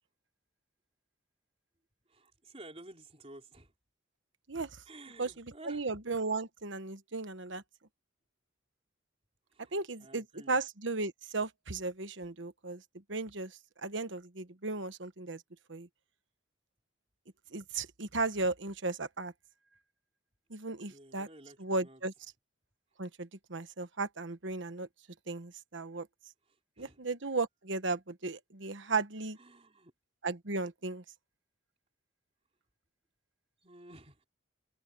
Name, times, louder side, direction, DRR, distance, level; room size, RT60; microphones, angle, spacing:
voice 1, 2.1-3.7 4.8-5.9 9.5-10.6 20.9-22.0 26.4-27.0 29.4-29.9 33.6-34.2, right 2 dB, 30° right, 4.1 m, -53 dB
voice 2, 4.5-4.8 5.2-5.3 5.7-7.6 9.7-12.8 13.1-15.4 15.7-15.9 17.5-19.3 20.5-21.3 21.6-22.1 23.0-24.9 25.3-26.1 26.8-29.4 30.2-31.0, right 3 dB, 70° right, 1.2 m, -35 dB
head